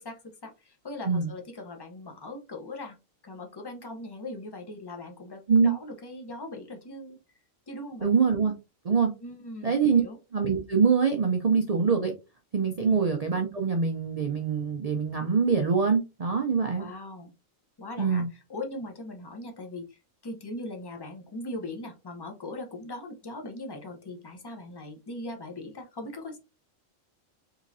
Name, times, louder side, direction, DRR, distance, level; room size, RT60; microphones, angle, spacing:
voice 1, 0.0-3.0 3.2-7.2 7.7-8.1 9.2-10.2 12.8-13.0 16.7-17.3 17.8-18.2 18.5-26.4, left 2 dB, 30° left, 3 dB, 0.4 m, -40 dB
voice 2, 8.0-8.5 8.8-9.1 9.6-10.0 10.3-12.1 12.5-16.9 18.0-18.3, right 5 dB, 60° right, 3 dB, 0.4 m, -24 dB
3.7 x 3.0 x 2.6 m, 0.26 s
omnidirectional pair, 1.4 m